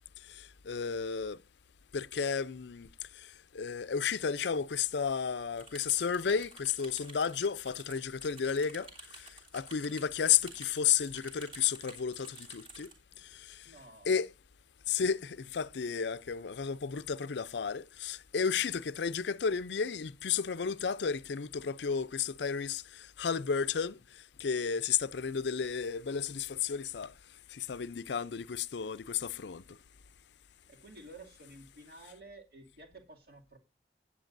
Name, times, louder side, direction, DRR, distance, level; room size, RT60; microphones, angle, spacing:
voice 1, 0.7-1.4 1.9-2.9 3.5-8.9 9.5-12.9 13.4-13.6 14.1-14.3 14.9-24.0 24.4-27.1 27.5-29.6, left 7 dB, 75° left, 0.5 m, -32 dB
sound 1, 5.6-12.9, right 3 dB, 30° right, 3.1 m, -51 dB
voice 2, 13.6-14.1 30.5-33.6, right 2 dB, 55° right, 2.5 m, -52 dB
17.5 x 8.6 x 2.6 m
head